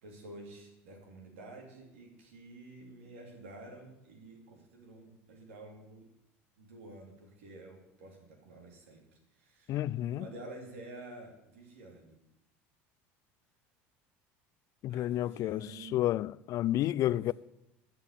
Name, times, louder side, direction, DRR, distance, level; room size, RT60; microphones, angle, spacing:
voice 1, 0.0-6.1 6.6-9.0 9.3-9.8 10.1-12.2 14.9-16.0 17.0-17.3, right 2 dB, 90° right, 3.2 m, -50 dB
voice 2, 9.7-10.3 14.8-17.3, left 14 dB, 55° left, 0.4 m, -31 dB
13.0 x 6.2 x 8.5 m
supercardioid pair, 85°, 7 cm